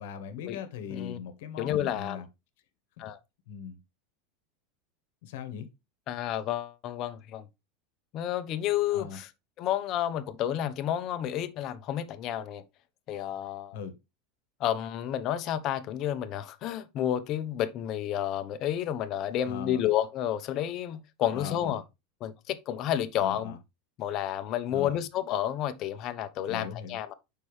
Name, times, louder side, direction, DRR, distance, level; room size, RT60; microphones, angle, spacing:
voice 1, 0.0-2.3 3.0-3.1 3.5-3.8 5.2-5.7 8.9-9.2 13.7-13.9 19.4-19.8 21.3-21.8 23.2-23.6 24.7-25.0 26.5-27.0, left 7 dB, 75° left, 1.3 m, -39 dB
voice 2, 0.9-1.2 1.6-2.2 3.0-3.2 6.1-7.5 8.1-9.3 9.6-12.6 13.1-13.8 14.6-21.8 22.2-23.6 24.0-27.1, left 11 dB, 45° left, 0.8 m, -30 dB
6.8 x 5.5 x 3.2 m
supercardioid pair, 140°, 0 cm